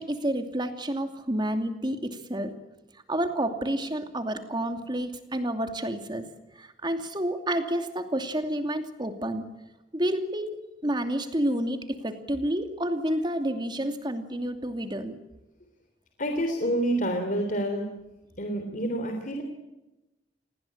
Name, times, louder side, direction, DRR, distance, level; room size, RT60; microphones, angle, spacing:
voice 1, 0.0-2.5 3.1-6.3 6.6-9.4 9.9-15.2, right 1 dB, 25° right, 7 dB, 2.6 m, -29 dB
voice 2, 16.2-17.9 18.4-19.4, right 1 dB, 50° left, 4 dB, 3.4 m, -28 dB
29.0 x 20.5 x 8.7 m, 1.0 s
head